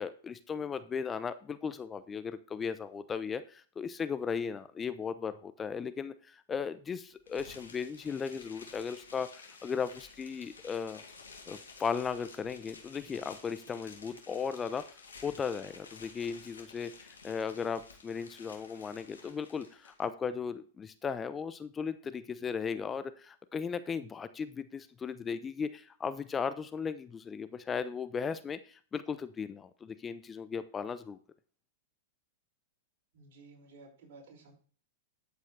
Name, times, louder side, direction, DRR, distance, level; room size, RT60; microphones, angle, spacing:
voice 1, 0.0-11.0 11.5-14.8 15.2-31.2, left 6 dB, 20° left, 12 dB, 0.7 m, -36 dB
sound 1, 7.3-20.0, left 4 dB, 85° left, 2.8 m, -52 dB
voice 2, 33.1-34.5, right 3 dB, 55° right, -2 dB, 5.7 m, -54 dB
11.5 x 8.3 x 3.3 m, 0.41 s
hypercardioid pair, 105°, 0 cm